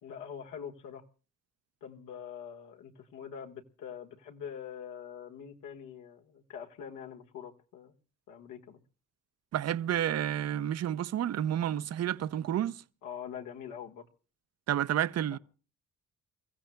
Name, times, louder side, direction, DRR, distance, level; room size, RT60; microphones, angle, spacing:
voice 1, 0.0-1.0 1.8-7.9 8.3-8.8 13.0-14.0 15.3-15.4, left 8 dB, 90° left, 1.5 m, -44 dB
voice 2, 9.5-12.8 14.7-15.4, right 11 dB, 55° right, 0.6 m, -30 dB
29.0 x 15.0 x 2.2 m
cardioid pair, 90°, 30 cm